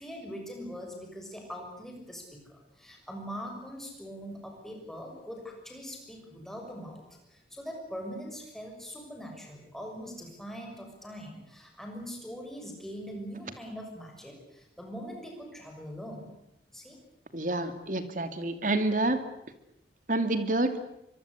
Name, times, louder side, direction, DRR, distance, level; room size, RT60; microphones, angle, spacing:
voice 1, 0.0-7.0 7.3-16.3 16.7-17.0, equal, ahead, 1 dB, 6.4 m, -42 dB
voice 2, 17.3-19.2 20.1-20.8, right 2 dB, 45° right, 10 dB, 2.6 m, -28 dB
24.5 x 23.0 x 8.3 m, 0.81 s
head